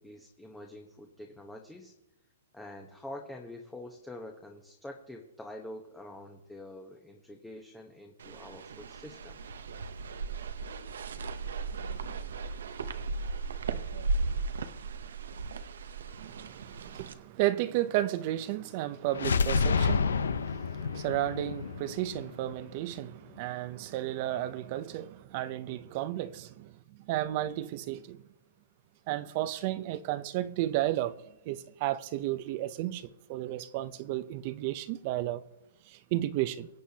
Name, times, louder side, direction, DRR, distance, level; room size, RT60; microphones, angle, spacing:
voice 1, 0.0-1.9 2.5-9.4, left 1 dB, 5° left, 0.9 m, -46 dB
sound 1, 8.2-17.1, right 3 dB, 80° right, 0.8 m, -36 dB
voice 2, 16.2-26.7 27.1-28.2 29.1-31.1 31.5-35.4 35.9-36.7, right 14 dB, 40° right, 0.6 m, -33 dB
sound 2, 19.1-23.0, left 5 dB, 90° left, 0.7 m, -29 dB
23.0 x 8.3 x 2.8 m
hypercardioid pair, 145°, 0 cm